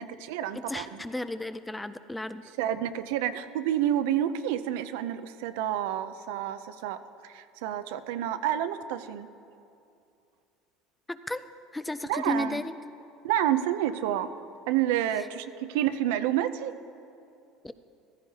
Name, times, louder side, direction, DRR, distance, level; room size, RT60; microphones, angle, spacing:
voice 1, 0.0-1.0 2.6-9.3 12.1-12.6 13.2-14.3 14.7-16.7, right 11 dB, 85° right, 11 dB, 0.5 m, -29 dB
voice 2, 0.5-2.4 11.1-11.4 11.7-12.7 17.6-17.7, left 1 dB, 10° left, 11 dB, 0.4 m, -33 dB
15.0 x 13.5 x 2.8 m, 2.6 s
cardioid pair, 130°, 0 cm